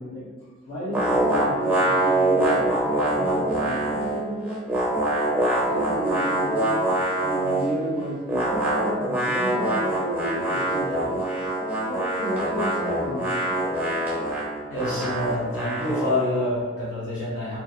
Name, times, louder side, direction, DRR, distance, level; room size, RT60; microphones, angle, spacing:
voice 1, 0.0-4.6 5.7-6.8 7.2-11.2 11.9-13.3 14.7-14.8, equal, 85° left, -12 dB, 0.8 m, -32 dB
sound 1, 0.9-4.2 4.5-7.8 8.3-16.3, right 1 dB, 10° right, 0.5 m, -24 dB
voice 2, 14.7-17.6, left 1 dB, 70° left, -8 dB, 1.4 m, -27 dB
2.5 x 2.3 x 2.4 m, 1.5 s
head